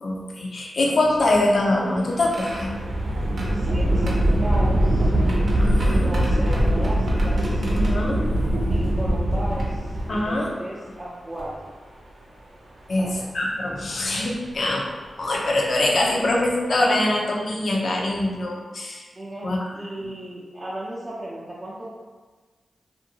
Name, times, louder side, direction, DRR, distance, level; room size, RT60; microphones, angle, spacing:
voice 1, 0.0-2.7 5.6-6.1 7.7-8.2 10.1-10.5 12.9-13.1 13.3-14.9 15.2-19.0 19.4-19.7, left 1 dB, 65° left, -1 dB, 0.5 m, -23 dB
sound 1, 1.2-10.5 11.4-11.5 12.9-13.2 13.9-14.1 15.7-15.8 16.2-16.5, right 1 dB, 75° right, 0.6 m, -22 dB
voice 2, 3.5-5.1 6.0-7.6 8.7-11.5 13.0-13.2 19.2-21.9, right 1 dB, 30° right, -7 dB, 0.5 m, -35 dB
2.6 x 2.5 x 2.8 m, 1.4 s
cardioid pair, 65°, 0 cm